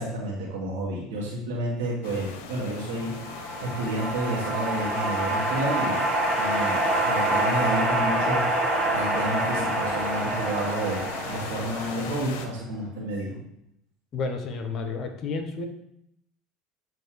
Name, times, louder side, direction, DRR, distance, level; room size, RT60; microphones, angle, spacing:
voice 1, 0.0-3.1 3.6-6.0 6.3-13.4, right 1 dB, 80° right, -5 dB, 1.3 m, -30 dB
sound 1, 2.0-12.5, left 6 dB, 75° left, 0.7 m, -39 dB
sound 2, 3.0-12.5, right 1 dB, 25° right, 1.8 m, -27 dB
voice 2, 14.1-15.7, left 4 dB, 45° left, 6 dB, 0.9 m, -31 dB
7.7 x 2.7 x 4.6 m, 0.78 s
supercardioid pair, 95°, 0 cm